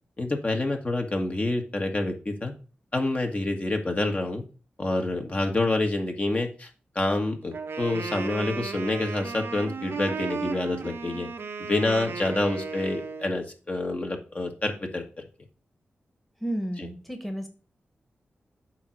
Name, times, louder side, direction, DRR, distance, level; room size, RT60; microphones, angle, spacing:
voice 1, 0.2-2.5 2.9-4.4 4.8-6.7 6.9-11.3 11.6-15.0 16.8-16.9, left 2 dB, 35° left, 3 dB, 1.5 m, -27 dB
Wind instrument woodwind instrument, 7.5-13.4, right 5 dB, 70° right, 0.9 m, -35 dB
voice 2, 16.4-17.5, right 1 dB, 5° left, 5 dB, 1.4 m, -32 dB
8.5 x 2.9 x 6.3 m, 0.35 s
cardioid pair, 70°, 4 cm